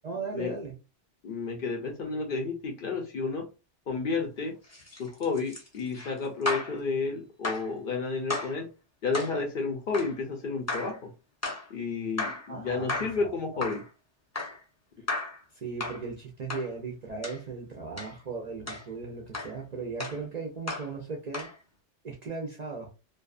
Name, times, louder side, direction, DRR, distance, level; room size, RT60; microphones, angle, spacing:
voice 1, 0.0-0.8 12.5-13.6 15.5-21.5 22.0-22.9, right 4 dB, 50° right, 0.5 m, -37 dB
voice 2, 1.2-3.5 3.9-4.6 5.0-8.7 9.0-11.1 11.7-13.8, left 4 dB, 60° left, 0.7 m, -31 dB
sound 1, 4.6-6.8 7.4-7.7 8.3-8.6 9.1-9.4 9.9-10.2 10.7-11.0 11.4-11.7 12.2-12.5 12.9-13.2 13.6-13.9 14.3-14.6 15.1-15.4 15.8-16.0 16.5-16.7 17.2-17.4 18.0-18.1 18.7-18.9 19.3-19.6 20.0-20.2 20.7-20.9 21.3-21.5, left 3 dB, 15° left, 0.6 m, -34 dB
2.6 x 2.2 x 2.4 m
omnidirectional pair, 1.2 m